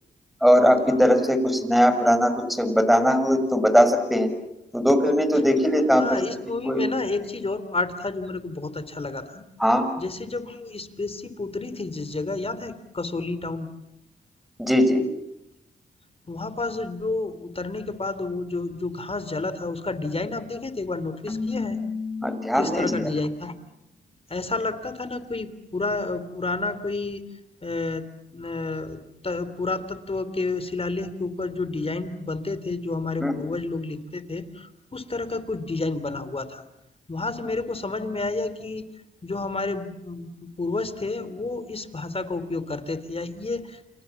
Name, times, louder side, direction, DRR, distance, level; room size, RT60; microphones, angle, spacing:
voice 1, 0.4-4.3 4.7-6.2 6.7-6.8 9.6-9.9 14.6-15.0 22.2-23.1 33.2-33.4, equal, ahead, 9 dB, 6.1 m, -20 dB
voice 2, 5.9-9.5 10.0-13.7 16.3-21.8 22.5-23.5 24.3-27.2 27.6-28.0 28.3-36.6 37.1-38.9 39.2-43.8, left 3 dB, 30° left, 12 dB, 3.7 m, -30 dB
Keyboard (musical), 21.3-23.3, left 4 dB, 15° left, 3.5 m, -32 dB
29.0 x 28.0 x 7.4 m, 0.87 s
cardioid pair, 60°, 19 cm